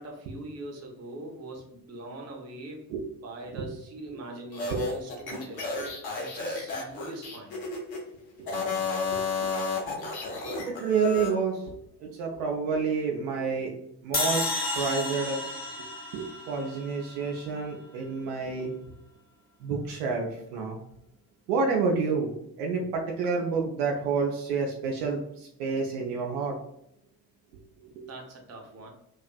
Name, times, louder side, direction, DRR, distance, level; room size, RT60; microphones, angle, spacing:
voice 1, 0.0-2.9 3.2-5.7 6.2-7.6 28.1-28.9, right 2 dB, 30° right, 1 dB, 0.7 m, -42 dB
sound 1, 4.5-8.0 8.4-11.3, left 4 dB, 50° left, 0.8 m, -32 dB
voice 2, 8.4-9.5 10.0-10.1 10.4-13.7 14.0-15.4 16.1-18.8 19.6-20.8 21.5-22.3 22.6-26.5 27.8-28.0, right 5 dB, 65° right, 0 dB, 0.5 m, -29 dB
sound 2, 14.1-17.4, left 2 dB, 20° left, 0.5 m, -32 dB
2.5 x 2.4 x 2.2 m, 0.78 s
figure-of-eight pair, 45°, 49 cm